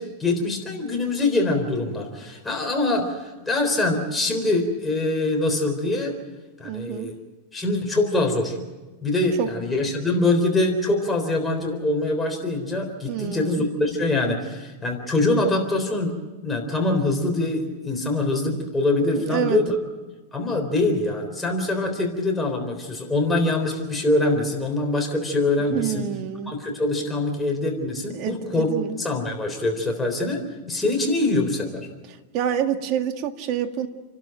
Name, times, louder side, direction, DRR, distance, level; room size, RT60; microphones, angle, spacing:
voice 1, 0.0-6.1 6.6-7.1 7.5-8.6 9.0-16.1 16.4-19.8 20.3-26.1 26.5-28.7 29.0-30.4 30.7-31.9, left 2 dB, 10° left, 2 dB, 3.8 m, -24 dB
voice 2, 6.6-7.1 9.4-9.5 13.0-13.7 19.3-19.6 25.7-26.6 28.1-28.9 32.3-33.9, right 9 dB, 45° right, 6 dB, 1.9 m, -27 dB
29.5 x 12.5 x 9.0 m, 1.2 s
supercardioid pair, 140°, 0 cm